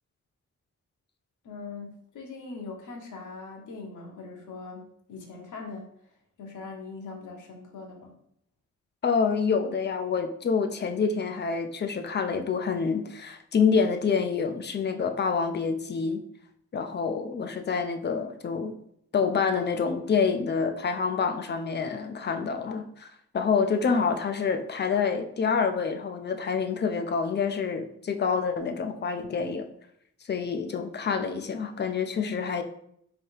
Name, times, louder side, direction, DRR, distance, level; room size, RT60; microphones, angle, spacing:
voice 1, 1.4-4.8 5.1-5.9 6.4-8.1, left 4 dB, 85° left, 1 dB, 1.0 m, -41 dB
voice 2, 9.0-16.2 16.7-18.7 19.1-23.1 23.3-29.7 30.3-32.6, left 5 dB, 35° left, 6 dB, 0.4 m, -27 dB
3.2 x 2.8 x 4.5 m, 0.71 s
wide cardioid pair, 155°, 30 cm